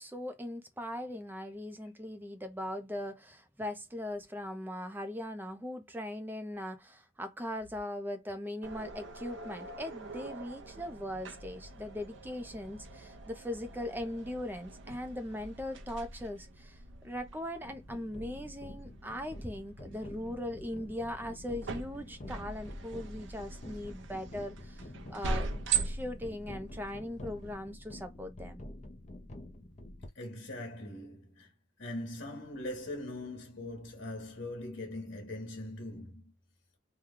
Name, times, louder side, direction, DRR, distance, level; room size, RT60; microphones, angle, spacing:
voice 1, 0.0-25.5 25.8-28.6, left 1 dB, 10° right, 0.5 m, -40 dB
sound 1, 8.6-27.5, right 4 dB, 70° right, 0.7 m, -42 dB
sound 2, 17.6-30.1, left 1 dB, 35° left, 0.6 m, -48 dB
voice 2, 30.1-31.5 31.8-36.3, left 1 dB, 65° left, 1.3 m, -41 dB
3.1 x 2.3 x 3.6 m
head